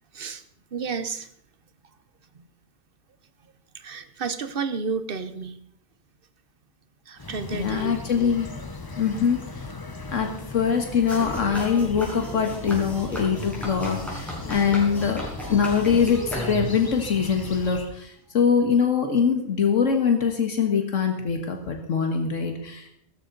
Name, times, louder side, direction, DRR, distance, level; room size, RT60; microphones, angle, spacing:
voice 1, 0.7-1.3 2.3-2.4 3.7-5.6 7.1-8.4, right 5 dB, 50° right, 11 dB, 1.1 m, -32 dB
sound 1, 7.2-17.9, left 3 dB, 20° left, 0.8 m, -38 dB
voice 2, 7.5-8.5 9.0-9.7 10.1-15.2 15.5-22.9, left 6 dB, 80° left, 4 dB, 1.8 m, -23 dB
sound 2, 11.1-16.9, equal, ahead, 5.2 m, -34 dB
16.0 x 13.5 x 4.0 m, 0.69 s
omnidirectional pair, 1.3 m